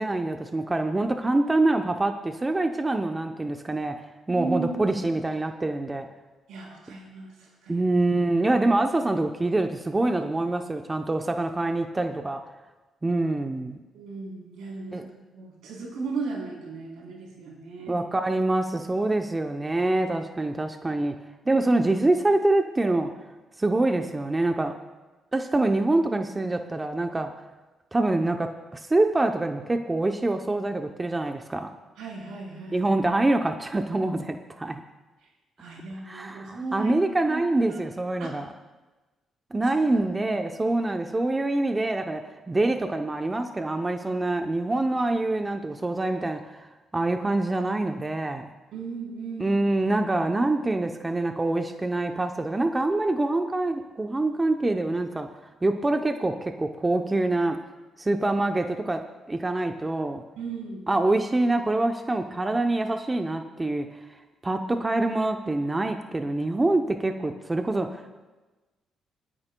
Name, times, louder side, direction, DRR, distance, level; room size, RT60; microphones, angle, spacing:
voice 1, 0.0-4.0 4.3-6.1 7.7-12.4 13.0-13.8 14.9-15.0 17.9-21.1 21.5-23.1 23.6-24.7 25.3-27.3 27.9-31.7 32.7-34.8 36.0-38.5 39.5-42.2 42.5-46.7 46.9-48.5 49.4-55.3 55.6-57.6 58.0-59.0 59.3-60.2 60.9-63.9 64.4-68.1, right 2 dB, 20° right, 5 dB, 0.7 m, -25 dB
voice 2, 4.3-4.7 6.5-7.8 13.9-18.0 21.5-21.6 32.0-32.9 35.6-36.9 37.3-37.4 37.6-37.8 38.2-38.3 39.7-40.0 48.7-49.6 60.4-60.8, right 4 dB, 90° right, -2 dB, 3.8 m, -36 dB
28.0 x 9.8 x 2.2 m, 1.2 s
cardioid pair, 90°, 0 cm